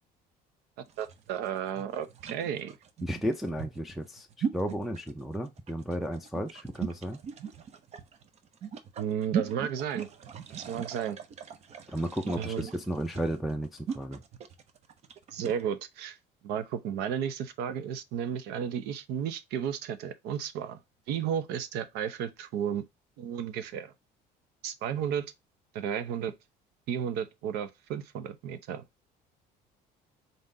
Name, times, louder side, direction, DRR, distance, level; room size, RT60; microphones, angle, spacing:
sound 1, 0.9-15.6, right 7 dB, 40° right, 0.7 m, -38 dB
voice 1, 1.0-2.8 9.0-10.1 10.7-11.2 12.4-12.7 15.3-16.2 16.4-20.8 21.1-22.8 23.2-23.9 24.6-25.3 25.7-26.3 26.9-28.8, right 8 dB, 80° right, 0.7 m, -33 dB
voice 2, 3.0-7.2 11.9-14.2, equal, ahead, 0.5 m, -33 dB
3.9 x 3.7 x 2.6 m
cardioid pair, 140°, 17 cm